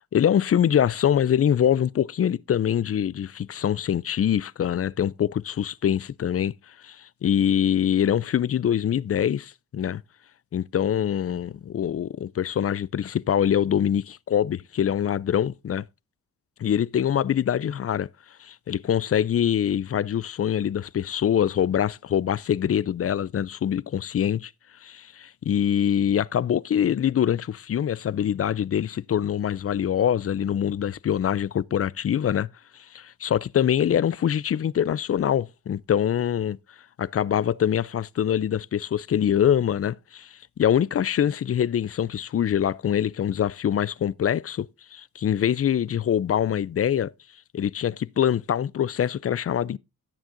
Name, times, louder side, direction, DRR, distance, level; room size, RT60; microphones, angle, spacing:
voice 1, 0.1-10.0 10.5-15.8 16.6-18.1 18.4-24.5 24.8-36.6 37.0-47.1 47.5-49.8, left 9 dB, 40° left, 0.4 m, -24 dB
16.5 x 7.2 x 2.5 m
cardioid pair, 55°, 37 cm